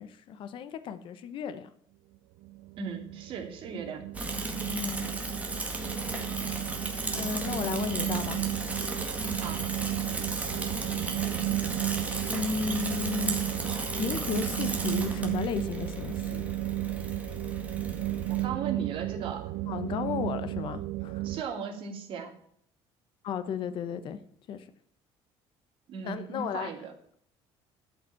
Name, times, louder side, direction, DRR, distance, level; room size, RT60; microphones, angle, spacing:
voice 1, 0.0-1.7 4.6-5.1 7.2-8.4 12.3-13.4 14.0-16.5 19.6-21.3 23.2-24.2 24.5-24.6 26.0-26.7, left 7 dB, 50° left, 12 dB, 1.1 m, -34 dB
sound 1, 2.4-21.4, right 17 dB, 75° right, 0.5 m, -34 dB
voice 2, 2.8-4.0 9.3-9.6 18.3-19.4 21.2-22.3 25.9-26.9, right 6 dB, 50° right, 2 dB, 2.8 m, -37 dB
Bicycle / Mechanisms, 4.1-18.4, right 2 dB, 15° right, 1.8 m, -35 dB
12.0 x 5.7 x 8.5 m, 0.66 s
cardioid pair, 155°, 11 cm